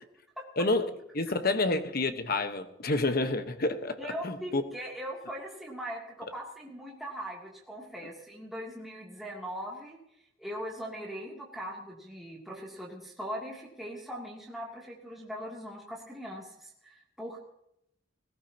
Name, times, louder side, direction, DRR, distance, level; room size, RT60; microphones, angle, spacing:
voice 1, 0.6-4.6, left 2 dB, 50° left, 8 dB, 1.2 m, -29 dB
voice 2, 4.0-10.0 10.4-17.4, equal, ahead, -4 dB, 2.8 m, -40 dB
20.0 x 16.0 x 2.9 m, 0.80 s
head